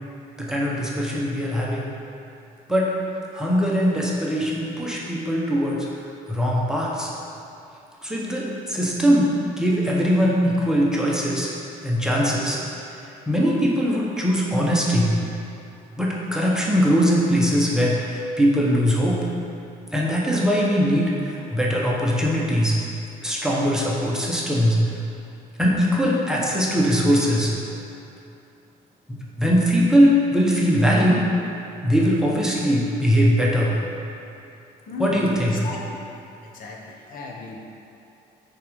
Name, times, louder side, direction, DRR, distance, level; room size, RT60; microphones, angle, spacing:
voice 1, 0.4-1.9 2.7-2.9 3.3-5.9 6.3-7.1 8.0-9.3 9.6-11.5 11.8-12.6 13.3-15.1 16.0-19.2 19.9-22.8 23.2-24.8 25.6-27.5 29.1-31.2 31.8-33.7 35.0-35.7, equal, 5° right, -5 dB, 1.2 m, -21 dB
voice 2, 34.9-36.0 36.4-37.6, left 3 dB, 55° left, -1 dB, 1.2 m, -35 dB
6.6 x 5.0 x 5.3 m, 2.7 s
cardioid pair, 110°, 17 cm